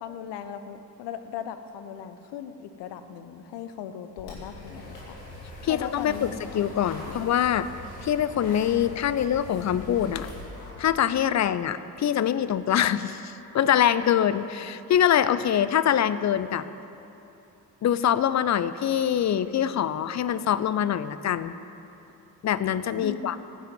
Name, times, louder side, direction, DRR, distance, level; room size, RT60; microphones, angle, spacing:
voice 1, 0.0-5.2 5.7-7.2 23.0-23.4, left 8 dB, 55° left, 10 dB, 1.1 m, -38 dB
sound 1, 4.2-10.8, left 2 dB, 75° left, 2.9 m, -42 dB
voice 2, 5.6-6.3 6.5-7.7 8.0-10.3 10.8-16.6 17.8-21.5 22.4-23.4, left 10 dB, 35° left, 14 dB, 0.6 m, -24 dB
15.0 x 9.1 x 7.6 m, 2.9 s
figure-of-eight pair, 45°, 48 cm